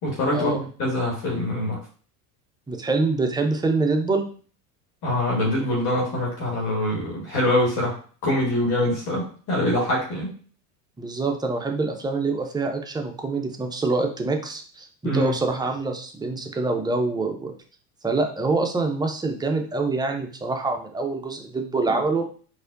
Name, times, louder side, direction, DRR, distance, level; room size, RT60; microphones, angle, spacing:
voice 1, 0.0-1.8 5.0-10.3 15.0-15.3, left 1 dB, 50° left, -2 dB, 1.6 m, -24 dB
voice 2, 2.7-4.3 11.0-17.5 18.0-22.3, right 3 dB, 10° right, 4 dB, 0.4 m, -25 dB
4.1 x 2.6 x 2.5 m, 0.42 s
hypercardioid pair, 80°, 48 cm